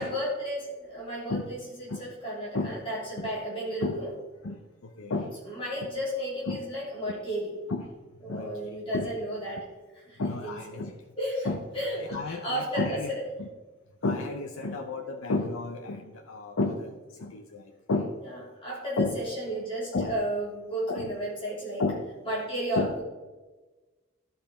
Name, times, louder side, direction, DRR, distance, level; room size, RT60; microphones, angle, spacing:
voice 1, 0.0-4.1 5.4-7.6 8.2-10.8 11.2-13.2 14.6-14.7 18.3-21.8 22.2-23.0, equal, 25° left, -6 dB, 3.4 m, -33 dB
voice 2, 5.0-5.3 6.5-6.6 7.1-7.2 7.7-7.8 8.3-9.1 10.2-10.9 11.4-11.6 12.0-13.1 13.4-13.5 14.0-18.1 19.0-19.2 19.9-20.1 20.9-21.1 21.8-22.0 22.7-22.9, left 3 dB, 85° left, 4 dB, 0.7 m, -31 dB
13.0 x 5.5 x 4.4 m, 1.2 s
head